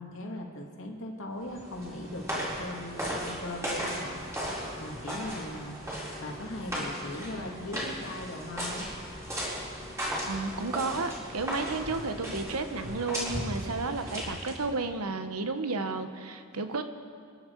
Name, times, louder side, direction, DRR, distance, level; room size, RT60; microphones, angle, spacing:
voice 1, 0.0-5.8 6.1-8.9, left 1 dB, 60° left, 0 dB, 2.3 m, -39 dB
sound 1, 1.4-14.7, equal, 15° right, 4.2 m, -36 dB
voice 2, 10.2-16.8, right 3 dB, 85° right, 8 dB, 1.2 m, -32 dB
27.5 x 10.5 x 4.7 m, 2.3 s
head